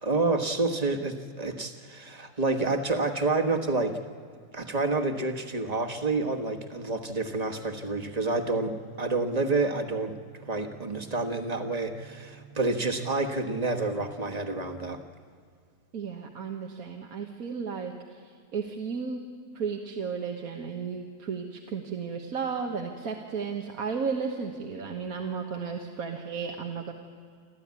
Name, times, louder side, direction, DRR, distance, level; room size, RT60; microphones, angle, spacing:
voice 1, 0.0-4.0 4.5-10.2 10.5-15.0, right 3 dB, 25° right, 6 dB, 1.5 m, -28 dB
sound 1, 5.8-15.2, right 6 dB, 90° right, 3.5 m, -53 dB
voice 2, 15.9-18.2 18.5-19.2 19.5-26.9, right 5 dB, 70° right, 3 dB, 1.8 m, -34 dB
26.0 x 14.0 x 9.6 m, 2.1 s
omnidirectional pair, 1.6 m